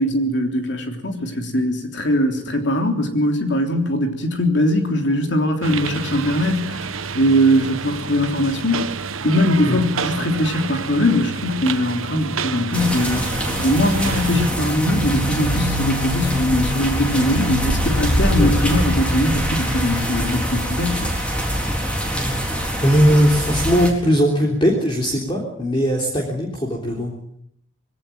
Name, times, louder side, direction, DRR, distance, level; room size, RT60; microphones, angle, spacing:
voice 1, 0.0-6.9 7.1-8.9 9.2-21.1, left 1 dB, 60° left, 4 dB, 3.4 m, -21 dB
sound 1, 5.6-14.5, right 5 dB, 85° right, 1.1 m, -29 dB
sound 2, 12.7-23.9, equal, 5° left, 4.1 m, -23 dB
voice 2, 22.8-27.1, equal, 25° left, -1 dB, 3.5 m, -19 dB
21.0 x 17.5 x 8.9 m, 0.73 s
head